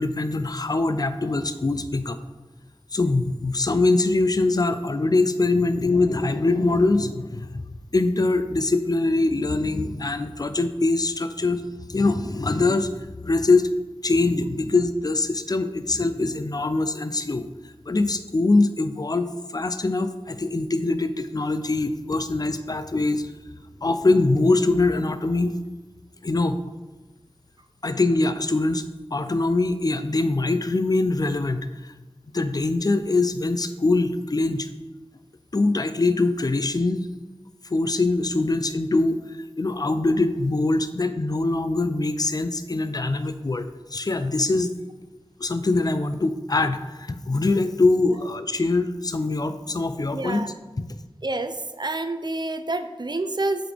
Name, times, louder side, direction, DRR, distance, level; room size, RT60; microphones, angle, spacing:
voice 1, 0.0-2.2 2.9-7.6 7.9-11.6 11.9-12.9 13.2-13.7 14.0-17.5 17.9-19.3 19.5-23.3 23.8-25.6 26.2-26.6 27.8-28.8 29.1-31.7 32.3-34.7 35.5-37.1 37.7-39.2 39.6-44.7 45.4-50.4, left 2 dB, 40° left, 11 dB, 0.4 m, -23 dB
voice 2, 50.1-50.5 51.2-53.7, right 2 dB, 45° right, 9 dB, 0.4 m, -28 dB
7.6 x 4.1 x 3.4 m, 1.1 s
wide cardioid pair, 50°, 11 cm